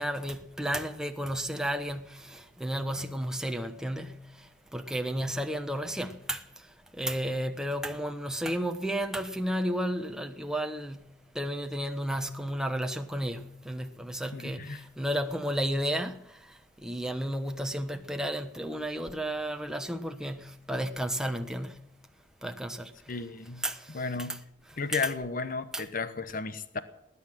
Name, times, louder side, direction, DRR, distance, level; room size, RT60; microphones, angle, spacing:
voice 1, 0.0-4.3 4.7-6.4 7.0-16.2 16.8-21.8 22.4-22.9 23.6-23.8 24.2-24.4 24.9-25.1 25.7-25.8, equal, 5° right, 1.1 m, -32 dB
voice 2, 14.3-14.8 23.1-23.6 23.9-24.4 24.8-26.8, left 4 dB, 50° left, 1.0 m, -33 dB
19.5 x 9.8 x 7.4 m
head